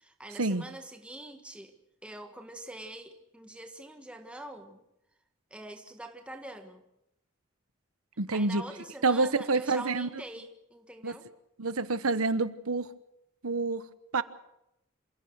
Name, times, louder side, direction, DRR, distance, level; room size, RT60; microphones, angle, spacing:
voice 1, 0.0-1.8 2.0-4.8 5.5-6.8 8.3-11.3, right 1 dB, 5° right, 5 dB, 1.5 m, -44 dB
voice 2, 8.2-8.6 9.0-10.1 11.0-11.1 11.6-12.9 13.4-13.8 14.1-14.2, right 3 dB, 85° right, 13 dB, 1.1 m, -27 dB
27.5 x 16.5 x 6.5 m, 0.83 s
head